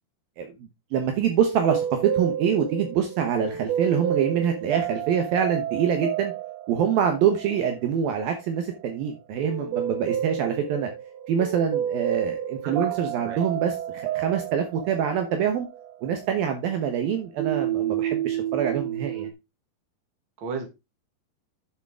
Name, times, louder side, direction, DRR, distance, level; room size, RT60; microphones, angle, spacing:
voice 1, 0.4-6.3 6.7-10.9 11.3-15.7 16.0-19.3, right 8 dB, 70° right, 6 dB, 2.6 m, -25 dB
sound 1, 1.4-17.1 17.4-19.3, right 10 dB, 85° right, 3.5 m, -31 dB
voice 2, 12.6-13.5 20.4-20.7, right 5 dB, 35° right, 4 dB, 2.2 m, -35 dB
11.0 x 6.8 x 3.6 m, 0.25 s
omnidirectional pair, 4.9 m